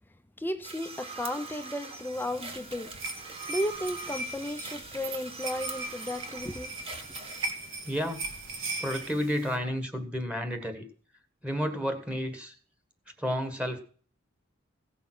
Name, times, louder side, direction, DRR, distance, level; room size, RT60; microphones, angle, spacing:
voice 1, 0.4-2.9 3.5-6.7, left 1 dB, 10° left, 0.7 m, -34 dB
sound 1, 0.6-7.5, right 4 dB, 30° right, 1.6 m, -42 dB
sound 2, 2.1-9.6, right 2 dB, 70° right, 2.4 m, -39 dB
voice 2, 7.8-8.3 8.8-10.8 11.4-12.5 13.2-13.8, equal, 5° right, 1.6 m, -31 dB
16.0 x 7.0 x 6.1 m
head